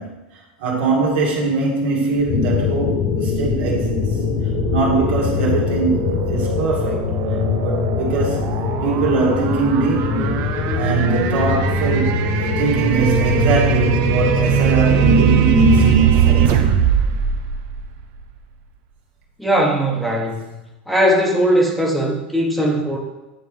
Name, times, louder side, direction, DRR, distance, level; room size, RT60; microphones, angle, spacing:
voice 1, 0.0-4.2 4.7-7.1 7.6-8.5 8.8-16.8, right 3 dB, 70° right, -3 dB, 2.1 m, -21 dB
sound 1, 2.2-18.4, right 9 dB, 55° right, 0.7 m, -21 dB
sound 2, 2.3-16.1, left 10 dB, 40° left, 0.4 m, -24 dB
voice 2, 19.4-20.6 20.9-23.0, equal, ahead, -2 dB, 1.3 m, -19 dB
9.6 x 3.5 x 3.5 m, 1.0 s
hypercardioid pair, 105°, 6 cm